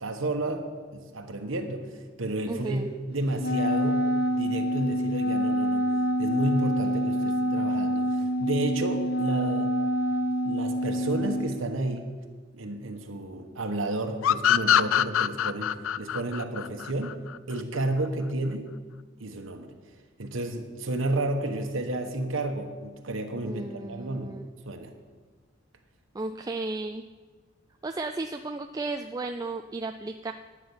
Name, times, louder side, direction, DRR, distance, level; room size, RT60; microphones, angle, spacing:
voice 1, 0.0-4.0 4.3-5.8 6.2-9.7 10.4-12.1 12.5-17.2 17.5-18.8 19.2-19.7 20.2-24.4 24.7-24.9, right 2 dB, 85° right, 4 dB, 1.2 m, -31 dB
voice 2, 2.4-2.9 23.4-24.5 26.1-27.0 27.8-30.3, right 3 dB, 20° right, 6 dB, 0.3 m, -34 dB
Wind instrument woodwind instrument, 3.4-11.5, equal, 55° left, 1.3 m, -26 dB
sound 1, 14.2-17.6, left 10 dB, 90° left, 0.4 m, -24 dB
12.0 x 5.9 x 8.6 m, 1.4 s
head